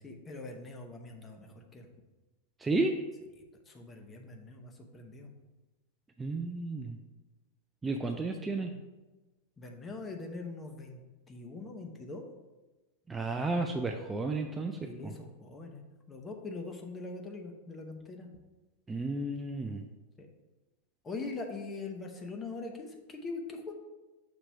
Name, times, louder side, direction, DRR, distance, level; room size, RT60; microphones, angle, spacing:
voice 1, 0.0-1.9 3.4-5.3 7.8-8.8 9.6-11.0 11.3-12.2 14.8-15.8 16.1-18.3 20.2-20.3 21.0-23.7, left 3 dB, 20° left, 3 dB, 0.9 m, -42 dB
voice 2, 2.6-3.0 6.2-7.0 7.8-8.7 13.1-15.1 18.9-19.8, right 3 dB, 15° right, 4 dB, 0.4 m, -32 dB
6.2 x 3.0 x 5.6 m, 1.2 s
figure-of-eight pair, 90°, 0 cm